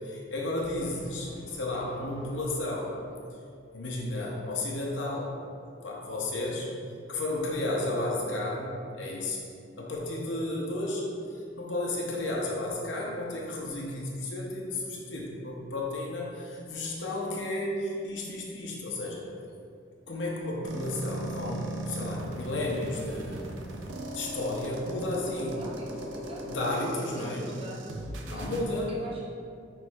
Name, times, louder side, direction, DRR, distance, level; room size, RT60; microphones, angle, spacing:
voice 1, 0.0-2.9 3.7-5.3 5.8-6.7 7.1-9.4 9.8-11.0 11.3-19.2 20.1-23.4 24.1-25.6 26.4-27.4 28.3-28.9, left 2 dB, 80° left, -3 dB, 0.7 m, -33 dB
Brass instrument, 0.6-3.7, equal, 5° left, 0.9 m, -52 dB
sound 1, 20.6-28.6, right 1 dB, 85° right, 0.4 m, -38 dB
voice 2, 25.5-26.4 27.1-27.8 28.3-29.2, right 2 dB, 30° right, -6 dB, 0.7 m, -44 dB
5.9 x 3.0 x 2.3 m, 2.4 s
head